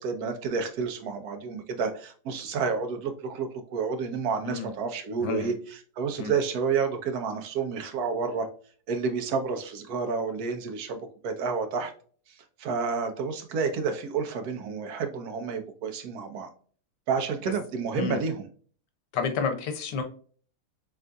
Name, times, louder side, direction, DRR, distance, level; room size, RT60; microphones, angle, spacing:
voice 1, 0.0-8.5 8.9-11.9 12.6-16.5 17.1-18.5, right 5 dB, 65° right, 6 dB, 1.2 m, -30 dB
voice 2, 5.2-5.5 6.2-6.3 17.9-18.2 19.1-20.0, left 6 dB, 85° left, 7 dB, 1.3 m, -30 dB
3.8 x 3.6 x 2.2 m, 0.43 s
omnidirectional pair, 1.8 m